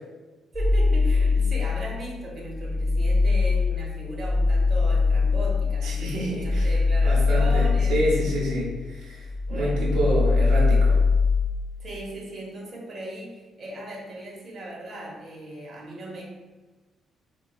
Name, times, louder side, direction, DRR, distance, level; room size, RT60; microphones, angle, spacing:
sound 1, 0.5-2.0 2.4-8.9 9.2-11.5, left 4 dB, 10° left, 0.4 m, -22 dB
voice 1, 0.5-8.0 9.5-9.9 11.8-16.2, right 1 dB, 45° right, -3 dB, 0.8 m, -37 dB
voice 2, 5.8-6.7 7.0-11.0, right 1 dB, 85° right, -4 dB, 0.8 m, -28 dB
4.1 x 2.3 x 2.3 m, 1.3 s
cardioid pair, 90°, 0 cm